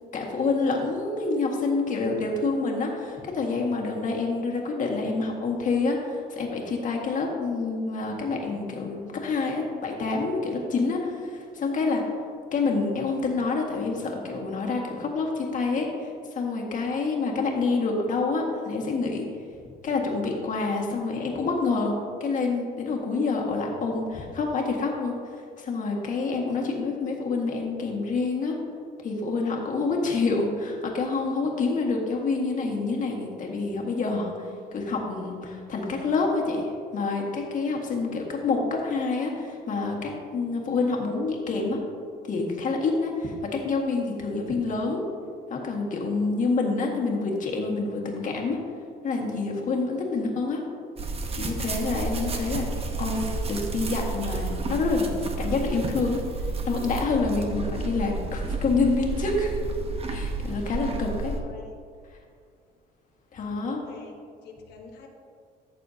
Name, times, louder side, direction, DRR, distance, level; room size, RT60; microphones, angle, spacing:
voice 1, 0.1-12.0 12.5-19.2 19.8-28.5 29.0-36.6 36.9-41.8 42.3-45.0 45.5-48.6 49.0-50.6 51.3-52.7 53.0-59.5 60.1-61.3 63.3-63.8, left 3 dB, 50° left, 0 dB, 1.8 m, -27 dB
sound 1, 51.0-61.4, right 3 dB, 35° right, 1.0 m, -31 dB
voice 2, 60.9-61.7 63.7-65.1, left 4 dB, 75° left, 1 dB, 1.3 m, -47 dB
14.0 x 6.7 x 2.8 m, 2.3 s
cardioid pair, 110°, 17 cm